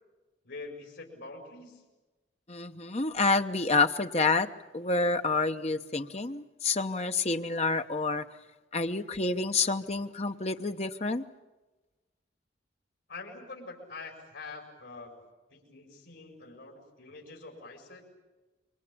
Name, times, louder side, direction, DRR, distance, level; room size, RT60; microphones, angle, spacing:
voice 1, 0.4-1.8 13.1-18.0, left 3 dB, 75° left, 1 dB, 5.3 m, -45 dB
voice 2, 2.5-4.5 4.7-8.2 8.7-11.2, left 3 dB, 35° left, 7 dB, 0.9 m, -28 dB
25.5 x 23.5 x 8.6 m, 1.2 s
head